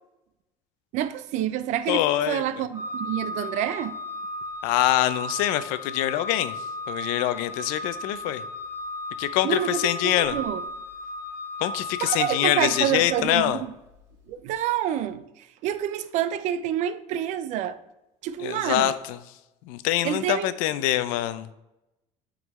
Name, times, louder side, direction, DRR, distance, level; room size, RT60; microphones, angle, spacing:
voice 1, 0.9-3.9 9.4-10.6 12.0-13.7 14.3-15.2 15.6-17.8 18.2-18.9 20.0-20.5, right 10 dB, 55° right, 0.4 m, -28 dB
voice 2, 1.9-2.4 4.6-6.5 6.9-8.4 9.2-10.4 11.6-13.6 18.4-19.2 19.7-21.5, left 13 dB, 85° left, 0.4 m, -24 dB
Organ, 2.7-13.5, left 2 dB, 25° right, 2.3 m, -35 dB
9.1 x 3.8 x 3.1 m
cardioid pair, 155°, 14 cm